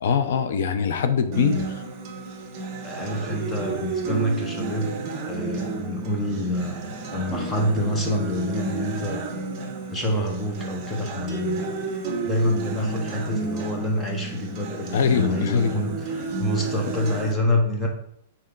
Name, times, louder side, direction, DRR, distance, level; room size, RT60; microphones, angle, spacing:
voice 1, 0.0-1.7 14.9-15.8, left 6 dB, 65° left, 10 dB, 0.7 m, -22 dB
Acoustic guitar, 1.3-17.3, right 4 dB, 30° right, 1.4 m, -31 dB
voice 2, 2.8-4.9 5.3-9.2 9.9-11.7 12.2-17.9, left 1 dB, 10° left, 1 dB, 1.1 m, -27 dB
6.4 x 4.3 x 3.9 m, 0.72 s
hypercardioid pair, 160°, 0 cm